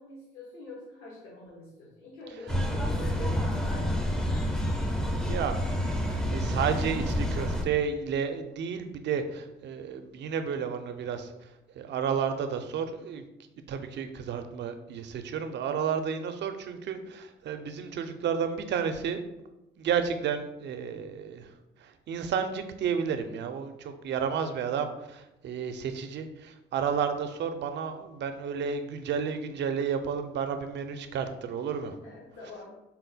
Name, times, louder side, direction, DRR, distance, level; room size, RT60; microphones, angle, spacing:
voice 1, 0.0-4.5 32.0-32.7, left 2 dB, 85° left, -6 dB, 1.0 m, -45 dB
sound 1, 2.5-7.6, equal, 5° left, 0.4 m, -28 dB
voice 2, 6.1-13.3 13.7-19.2 19.8-31.9, right 7 dB, 55° right, 8 dB, 0.5 m, -32 dB
4.1 x 2.1 x 4.0 m, 0.95 s
cardioid pair, 90°, 21 cm